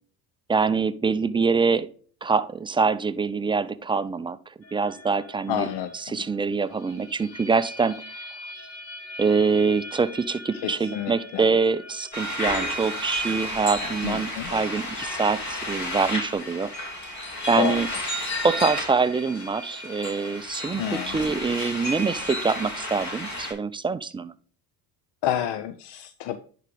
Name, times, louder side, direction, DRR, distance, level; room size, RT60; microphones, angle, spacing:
voice 1, 0.5-1.9 2.2-4.4 4.7-5.7 5.9-8.2 8.6-8.7 9.2-16.7 17.5-17.9 18.4-24.3, right 4 dB, 10° right, 13 dB, 0.4 m, -25 dB
sound 1, 4.6-20.4, left 1 dB, 90° left, 1.3 m, -45 dB
voice 2, 5.5-6.2 10.6-11.5 14.0-14.5 17.6-17.8 20.8-21.2 25.2-26.4, left 11 dB, 55° left, 12 dB, 0.6 m, -29 dB
sound 2, 12.1-23.5, left 1 dB, 35° left, 2.4 m, -32 dB
10.5 x 3.8 x 3.3 m, 0.43 s
hypercardioid pair, 60°, 50 cm